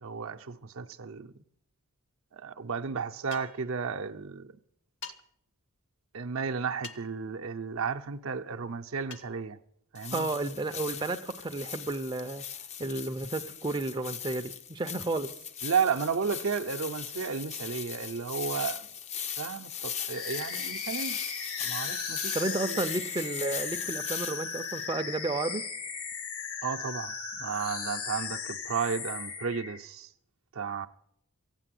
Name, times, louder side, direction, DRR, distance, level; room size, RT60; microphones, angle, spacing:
voice 1, 0.0-1.3 2.3-4.5 6.1-9.6 9.9-10.3 15.6-18.9 19.4-21.2 21.6-22.9 26.6-27.1 27.4-30.1 30.5-30.9, right 6 dB, 65° right, 0.6 m, -33 dB
sound 1, 3.3-3.7 5.0-5.2 6.8-7.2 9.1-9.3, left 6 dB, 55° left, 0.8 m, -43 dB
sound 2, 10.0-24.9, left 8 dB, 30° left, 0.5 m, -39 dB
voice 2, 10.1-12.4 12.8-15.3 22.3-25.6, right 2 dB, 20° right, 0.5 m, -32 dB
sound 3, 20.1-29.8, left 5 dB, 75° left, 1.3 m, -37 dB
15.0 x 9.1 x 7.6 m
head